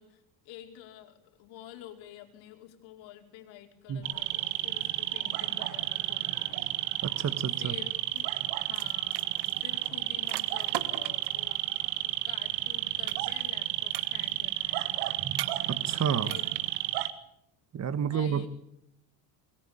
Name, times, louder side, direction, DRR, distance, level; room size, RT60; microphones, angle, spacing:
voice 1, 0.0-6.7 7.6-8.4 8.7-9.2 9.6-11.6 11.9-15.2 16.2-16.6 18.0-18.5, left 11 dB, 70° left, 4.8 m, -49 dB
sound 1, 4.0-17.1, right 15 dB, 85° right, 2.0 m, -32 dB
voice 2, 7.0-7.7 15.2-15.4 15.7-16.3 17.7-18.5, right 8 dB, 35° right, 1.5 m, -30 dB
sound 2, 8.2-8.4 8.6-11.4 13.1-13.6 13.9-14.5 15.3-15.9 16.2-16.8, right 12 dB, 55° right, 1.7 m, -39 dB
23.0 x 21.0 x 8.7 m
cardioid pair, 115°, 48 cm